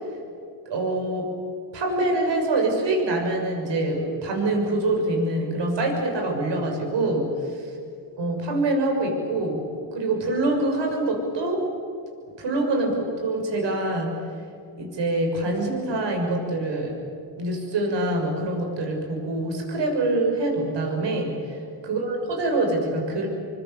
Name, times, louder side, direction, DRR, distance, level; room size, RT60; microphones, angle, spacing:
voice 1, 0.7-1.3 1.7-7.7 8.2-9.6 9.9-11.7 12.4-14.2 14.8-16.9 17.4-21.6 21.8-23.3, right 2 dB, 65° right, 2 dB, 6.9 m, -25 dB
29.0 x 24.5 x 7.0 m, 2.4 s
cardioid pair, 105°, 47 cm